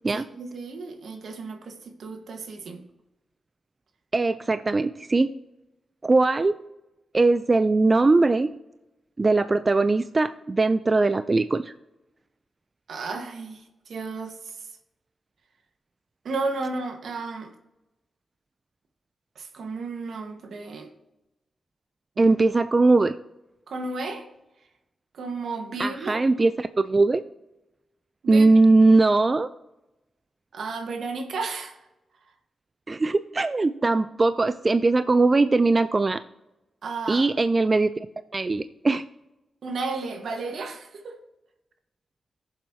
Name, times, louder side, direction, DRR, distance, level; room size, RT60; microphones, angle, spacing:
voice 1, 0.1-2.8 12.9-14.3 16.2-17.5 19.4-20.9 22.2-22.3 23.7-24.3 25.1-26.3 28.2-28.5 30.5-31.8 36.8-37.3 39.6-41.2, right 3 dB, 80° right, 5 dB, 1.5 m, -33 dB
voice 2, 4.1-5.3 6.0-6.6 7.1-8.5 9.2-11.7 22.2-23.2 25.8-27.2 28.3-29.5 32.9-36.2 37.1-37.9 38.3-39.0, right 3 dB, 40° right, 12 dB, 0.4 m, -20 dB
16.0 x 7.4 x 2.8 m, 0.96 s
cardioid pair, 50°, 0 cm